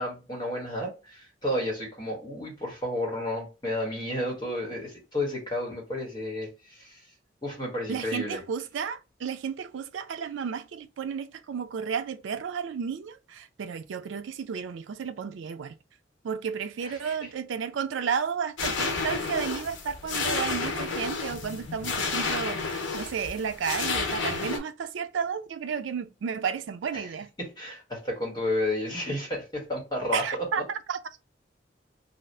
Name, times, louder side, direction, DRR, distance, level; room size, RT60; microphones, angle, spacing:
voice 1, 0.0-7.0 7.4-8.4 16.8-17.1 26.9-27.1 27.4-30.5, left 1 dB, 25° left, 1.3 m, -32 dB
voice 2, 7.9-15.8 16.2-27.3 30.1-31.0, right 6 dB, 80° right, 0.4 m, -32 dB
sound 1, 18.6-24.6, left 4 dB, 85° left, 0.7 m, -31 dB
2.7 x 2.3 x 3.3 m
head